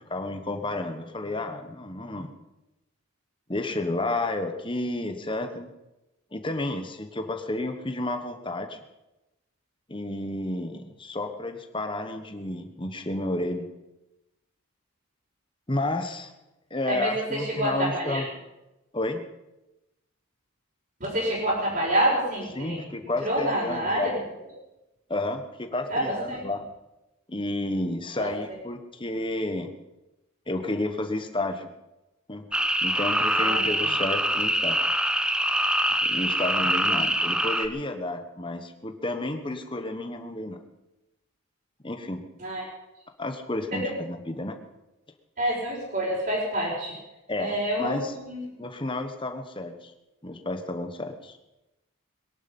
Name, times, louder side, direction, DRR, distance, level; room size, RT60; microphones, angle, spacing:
voice 1, 0.1-2.3 3.5-5.7 6.3-8.8 9.9-13.7 15.7-16.3 16.7-18.3 18.9-19.2 22.5-24.1 25.1-26.6 27.3-29.7 30.5-31.7 32.3-34.8 36.0-40.6 41.8-42.2 43.2-44.6 47.3-48.1 48.6-49.9 50.2-51.4, left 2 dB, 20° left, 7 dB, 1.2 m, -31 dB
voice 2, 16.9-18.2 21.0-22.8 23.2-24.1 25.9-26.4 28.2-28.3 33.4-33.9 42.4-42.6 43.7-43.8 45.4-46.9 47.4-48.4, right 1 dB, 40° right, -9 dB, 5.4 m, -27 dB
sound 1, 32.5-37.7, right 1 dB, 5° right, 0.7 m, -24 dB
22.0 x 11.5 x 5.5 m, 0.97 s
head